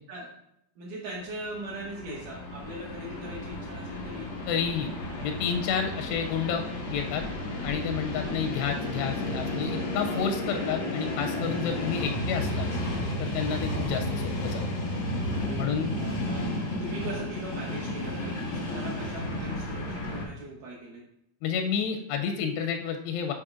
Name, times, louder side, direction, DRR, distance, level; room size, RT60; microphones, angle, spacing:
voice 1, 0.8-4.4 5.9-6.2 15.4-21.0, right 1 dB, 75° right, -5 dB, 1.9 m, -40 dB
Train, 1.3-20.2, left 1 dB, 70° left, 1.1 m, -32 dB
voice 2, 4.5-4.9 5.2-6.6 6.9-7.2 7.6-12.7 13.2-14.6 15.6-15.9 21.4-23.3, left 7 dB, 85° left, 5 dB, 2.6 m, -30 dB
10.0 x 4.3 x 2.5 m, 0.76 s
omnidirectional pair, 4.8 m